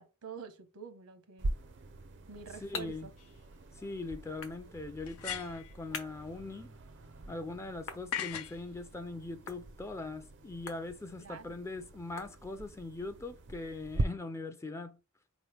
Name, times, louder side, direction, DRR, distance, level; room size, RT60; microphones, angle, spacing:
voice 1, 0.0-1.5 2.3-3.1 11.2-11.6, right 6 dB, 80° right, 1.0 m, -47 dB
sound 1, 1.4-14.0, right 2 dB, 55° right, 0.5 m, -43 dB
sound 2, 2.0-12.9, left 6 dB, 60° left, 0.9 m, -50 dB
voice 2, 2.6-3.1 3.8-6.7 7.3-15.0, left 2 dB, 15° left, 0.4 m, -41 dB
sound 3, 3.2-3.3 5.0-5.7 8.1-8.6, left 10 dB, 80° left, 0.5 m, -38 dB
4.5 x 3.1 x 3.3 m
head